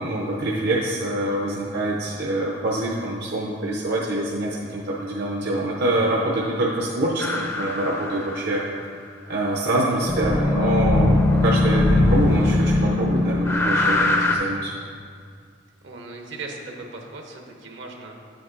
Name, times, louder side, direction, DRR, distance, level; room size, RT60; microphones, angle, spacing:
voice 1, 0.0-8.6 9.3-14.7, right 1 dB, 60° right, -3 dB, 0.7 m, -25 dB
sound 1, 7.2-8.6 10.1-14.4, left 2 dB, 15° left, 0.5 m, -20 dB
voice 2, 15.8-18.2, right 3 dB, 80° right, 1 dB, 1.0 m, -38 dB
9.5 x 7.9 x 2.5 m, 2.1 s
head